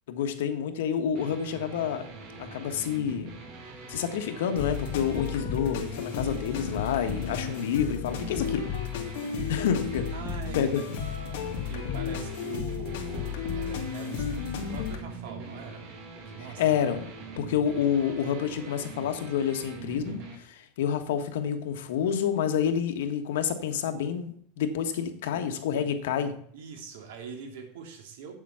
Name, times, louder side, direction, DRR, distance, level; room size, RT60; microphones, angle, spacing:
voice 1, 0.1-2.1 2.4-3.3 3.9-8.7 9.5-10.0 10.5-10.8 16.6-17.0 17.4-26.3, left 8 dB, 90° left, 7 dB, 1.4 m, -28 dB
sound 1, 1.1-20.4, right 4 dB, 45° right, 2.3 m, -43 dB
sound 2, 4.6-15.0, left 7 dB, 65° left, 2.1 m, -33 dB
voice 2, 10.1-10.9 11.7-15.8 16.2-16.8 25.3-25.9 26.5-28.3, right 6 dB, 80° right, 4 dB, 2.6 m, -43 dB
8.3 x 7.3 x 5.7 m, 0.62 s
supercardioid pair, 165°, 0 cm